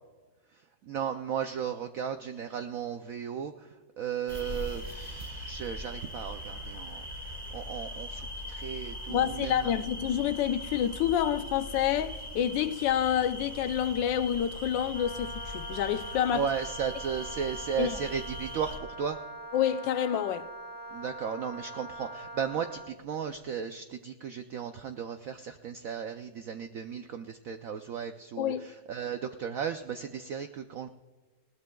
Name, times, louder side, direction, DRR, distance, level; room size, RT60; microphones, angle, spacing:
voice 1, 0.5-9.7 16.3-19.2 20.9-30.9, right 7 dB, 75° right, 0.7 m, -35 dB
sound 1, 4.3-18.8, equal, 25° right, 1.7 m, -40 dB
voice 2, 9.1-16.5 17.8-18.0 19.5-20.5 28.4-28.7, left 10 dB, 75° left, 1.3 m, -28 dB
Wind instrument woodwind instrument, 14.9-23.0, right 1 dB, 10° left, 2.2 m, -43 dB
20.0 x 17.5 x 2.3 m
omnidirectional pair, 2.1 m